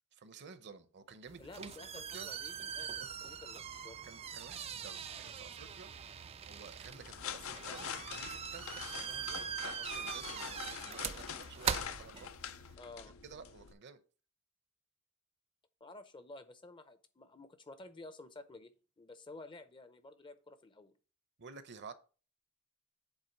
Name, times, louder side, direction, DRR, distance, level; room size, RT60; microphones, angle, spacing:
voice 1, 0.1-2.7 3.0-3.2 4.0-5.9 6.4-12.8 13.1-14.0 21.4-21.9, right 5 dB, 50° right, 0.7 m, -53 dB
sound 1, 1.3-12.7, right 7 dB, 25° right, 0.3 m, -42 dB
voice 2, 1.4-2.9 3.2-4.0 12.8-13.1 15.8-20.9, left 2 dB, 20° left, 0.6 m, -52 dB
sound 2, 6.9-13.7, left 8 dB, 65° left, 0.5 m, -45 dB
8.1 x 3.6 x 5.8 m
head